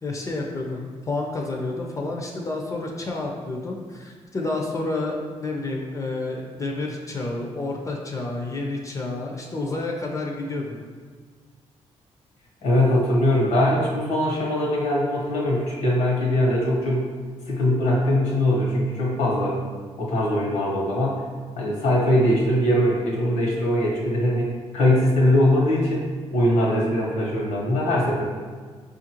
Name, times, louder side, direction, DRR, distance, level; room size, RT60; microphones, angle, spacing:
voice 1, 0.0-10.8, left 2 dB, 30° left, 0 dB, 0.5 m, -29 dB
voice 2, 12.6-17.1 17.5-19.6 20.0-21.2 21.6-26.1 26.3-28.2, left 1 dB, 85° left, -4 dB, 1.1 m, -21 dB
4.9 x 2.5 x 2.9 m, 1.5 s
cardioid pair, 105°, 11 cm